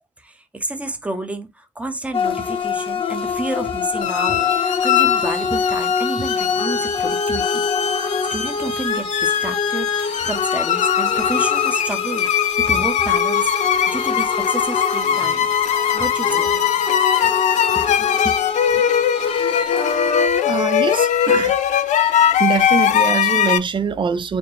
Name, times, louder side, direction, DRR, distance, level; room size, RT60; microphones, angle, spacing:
voice 1, 0.2-7.6 8.3-15.5 15.9-16.5 17.2-17.3 17.7-18.4 18.7-18.8 20.2-20.3, right 2 dB, 10° right, 0.8 m, -30 dB
sound 1, 2.1-20.3, left 5 dB, 50° left, 0.8 m, -25 dB
sound 2, 4.0-23.6, left 9 dB, 85° left, 0.4 m, -20 dB
voice 2, 20.4-21.6 22.4-24.4, right 6 dB, 45° right, 0.5 m, -23 dB
4.2 x 2.1 x 3.2 m
cardioid pair, 105°, 12 cm